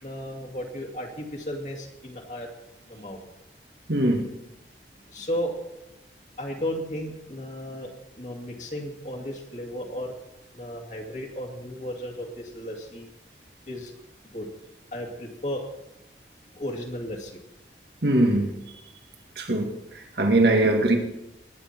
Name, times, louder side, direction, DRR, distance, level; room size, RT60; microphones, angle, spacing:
voice 1, 0.0-2.5 2.9-3.2 5.1-5.5 6.4-7.9 8.2-10.1 10.5-13.1 13.7-13.9 14.3-14.5 14.9-15.6 16.5-17.4, equal, 40° left, 2.3 m, -34 dB
voice 2, 3.9-4.3 18.0-18.5 19.4-19.7 20.2-21.0, right 1 dB, 65° right, 1.9 m, -21 dB
20.5 x 9.6 x 4.5 m
head